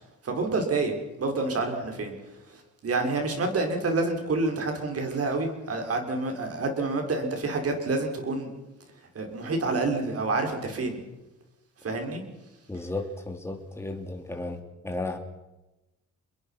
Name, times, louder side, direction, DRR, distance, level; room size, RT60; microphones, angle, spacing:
voice 1, 0.2-2.1 2.5-8.5 9.1-11.0 11.8-12.2, right 3 dB, 50° right, 4 dB, 6.0 m, -28 dB
voice 2, 12.7-15.2, left 2 dB, 10° left, 3 dB, 3.0 m, -34 dB
27.5 x 22.0 x 6.0 m, 1.0 s
cardioid pair, 90°, 30 cm